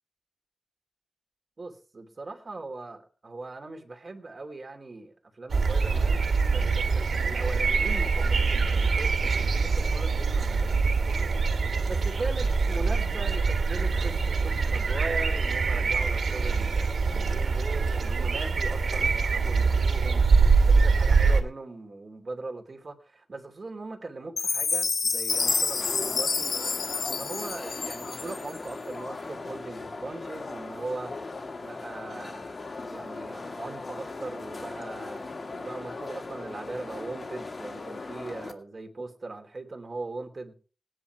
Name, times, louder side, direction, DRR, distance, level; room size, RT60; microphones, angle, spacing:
voice 1, 1.6-26.5 26.8-31.3 31.6-40.5, right 3 dB, 40° right, 5 dB, 2.9 m, -40 dB
sound 1, 5.5-21.4, right 4 dB, 85° right, 2.4 m, -24 dB
Chime, 24.4-28.6, left 4 dB, 65° left, 1.0 m, -28 dB
sound 2, 25.3-38.5, left 3 dB, 45° left, 2.3 m, -39 dB
19.0 x 10.5 x 4.7 m, 0.37 s
wide cardioid pair, 135°, 0 cm